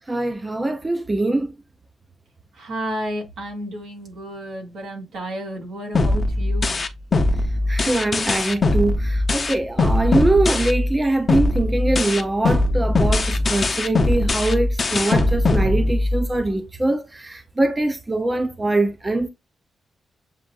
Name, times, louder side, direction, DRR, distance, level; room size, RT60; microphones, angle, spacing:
voice 1, 0.1-1.5 7.7-19.3, right 2 dB, 15° right, 0.5 m, -22 dB
voice 2, 2.5-6.8, equal, 85° right, 2.1 m, -32 dB
sound 1, 5.9-11.0 11.3-16.3, left 2 dB, 30° left, 0.6 m, -20 dB
7.4 x 2.5 x 2.3 m
wide cardioid pair, 140°, 0 cm